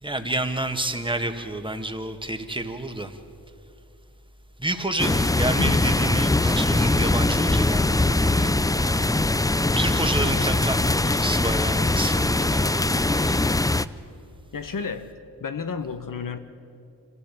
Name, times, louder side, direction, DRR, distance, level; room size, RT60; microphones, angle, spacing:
voice 1, 0.0-3.2 4.6-8.5 9.8-13.5, right 1 dB, 10° right, 6 dB, 2.0 m, -29 dB
sound 1, 5.0-13.8, left 2 dB, 10° left, 0.5 m, -22 dB
voice 2, 5.6-5.9 14.5-15.1 15.4-16.4, left 5 dB, 50° left, 9 dB, 1.5 m, -31 dB
25.5 x 15.5 x 8.5 m, 2.6 s
cardioid pair, 50°, 41 cm